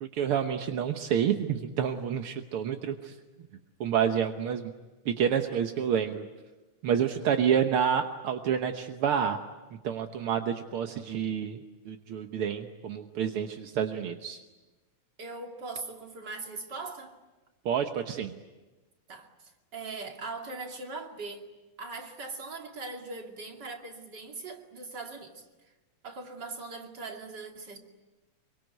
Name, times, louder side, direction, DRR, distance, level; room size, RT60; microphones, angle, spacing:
voice 1, 0.0-3.1 3.8-4.6 5.0-6.3 6.8-9.4 9.8-11.6 11.9-14.4 17.6-18.3, right 8 dB, 60° right, 1.5 m, -28 dB
voice 2, 15.2-17.1 19.1-21.5 21.8-25.5 26.0-27.8, right 3 dB, 35° right, 2.8 m, -40 dB
26.5 x 24.5 x 9.3 m
omnidirectional pair, 3.7 m